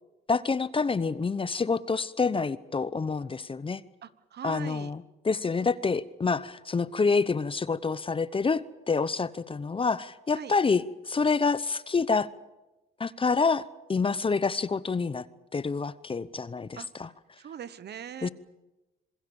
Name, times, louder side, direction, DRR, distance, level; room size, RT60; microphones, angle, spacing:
voice 1, 0.3-3.8 4.4-12.3 13.0-15.2 15.5-17.1 18.2-18.3, left 4 dB, 25° left, 17 dB, 0.9 m, -27 dB
voice 2, 4.0-4.9 10.3-10.5 16.8-16.9 17.4-18.3, right 8 dB, 55° right, 15 dB, 1.1 m, -40 dB
26.5 x 21.5 x 7.1 m, 1.0 s
cardioid pair, 90°, 20 cm